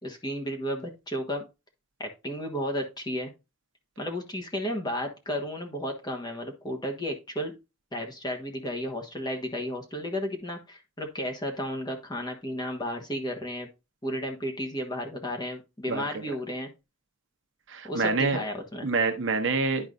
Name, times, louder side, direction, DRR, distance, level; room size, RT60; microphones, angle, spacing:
voice 1, 0.0-1.4 2.0-3.3 4.0-7.5 7.9-13.7 14.0-16.7 17.8-18.9, equal, 20° left, 1.2 m, -33 dB
voice 2, 17.7-18.4 18.8-19.9, right 4 dB, 55° right, 1.0 m, -26 dB
11.0 x 4.5 x 2.6 m
head